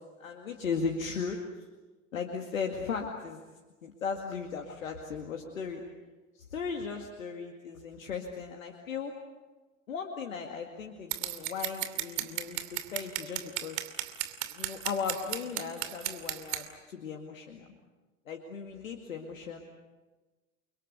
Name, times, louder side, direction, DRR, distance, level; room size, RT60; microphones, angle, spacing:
voice 1, 0.2-1.7 2.1-3.4 3.8-5.8 6.3-9.1 9.9-13.8 14.5-17.6 18.3-19.6, left 5 dB, 80° left, 3 dB, 2.3 m, -37 dB
Scissors, 11.1-16.6, right 15 dB, 60° right, 2.8 m, -34 dB
29.5 x 24.5 x 6.7 m, 1.2 s
hypercardioid pair, 75°, 39 cm